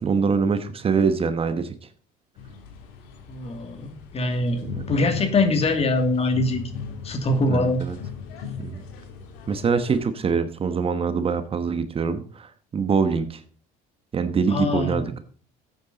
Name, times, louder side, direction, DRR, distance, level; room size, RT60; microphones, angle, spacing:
voice 1, 0.0-1.7 4.6-5.0 7.5-8.0 8.6-8.8 9.5-13.4 14.1-15.2, right 5 dB, 35° right, 10 dB, 1.2 m, -24 dB
sound 1, 2.4-10.0, left 6 dB, 85° left, 3.0 m, -38 dB
voice 2, 3.3-6.6 7.0-7.8 14.5-15.1, left 2 dB, 35° left, 6 dB, 2.5 m, -23 dB
13.5 x 8.7 x 4.1 m, 0.42 s
supercardioid pair, 105°, 18 cm